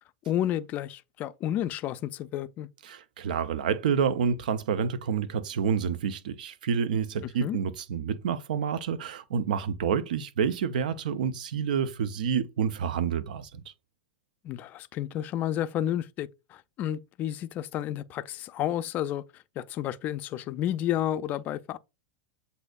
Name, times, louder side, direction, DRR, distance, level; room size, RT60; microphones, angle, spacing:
voice 1, 0.3-2.7 7.4-7.6 14.4-21.8, left 11 dB, 40° left, 0.4 m, -31 dB
voice 2, 2.8-13.6, right 7 dB, 70° right, 0.5 m, -28 dB
7.7 x 2.7 x 2.3 m
hypercardioid pair, 105°, 5 cm